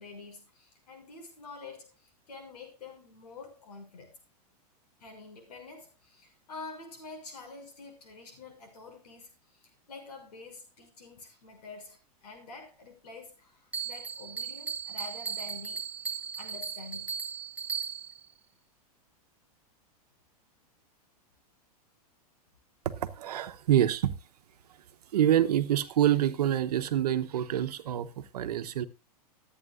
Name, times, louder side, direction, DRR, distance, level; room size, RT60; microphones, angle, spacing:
voice 1, 0.0-4.2 5.0-15.8 16.1-17.2, left 3 dB, 85° left, 6.2 m, -47 dB
Bell, 13.7-18.2, right 6 dB, 5° right, 1.2 m, -37 dB
voice 2, 22.8-24.1 25.1-28.9, right 11 dB, 80° right, 1.0 m, -26 dB
22.0 x 8.8 x 2.5 m
hypercardioid pair, 140°, 20 cm